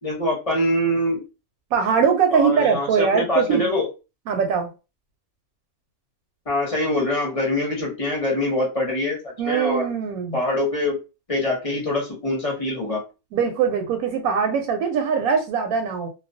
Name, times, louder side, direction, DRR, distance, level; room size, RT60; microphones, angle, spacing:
voice 1, 0.0-1.2 2.3-3.9 6.5-9.8 10.3-11.0 11.3-13.0, left 1 dB, 30° left, 0.7 m, -24 dB
voice 2, 1.7-3.7 4.3-4.7 9.4-10.4 13.3-16.1, right 6 dB, 80° right, 1.0 m, -21 dB
2.4 x 2.1 x 2.5 m
omnidirectional pair, 1.5 m